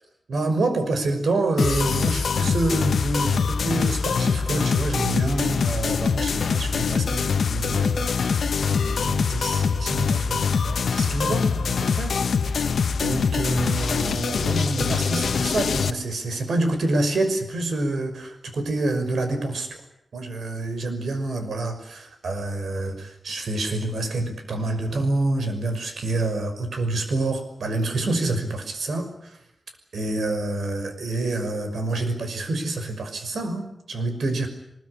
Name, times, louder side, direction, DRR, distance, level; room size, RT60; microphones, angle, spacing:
voice 1, 0.3-12.1 12.4-12.6 13.0-19.8 20.1-29.4 29.9-34.5, right 2 dB, 80° right, 7 dB, 5.9 m, -27 dB
sound 1, 1.6-15.9, left 5 dB, 80° left, 1.2 m, -24 dB
23.5 x 21.5 x 10.0 m, 0.78 s
wide cardioid pair, 120°, 0 cm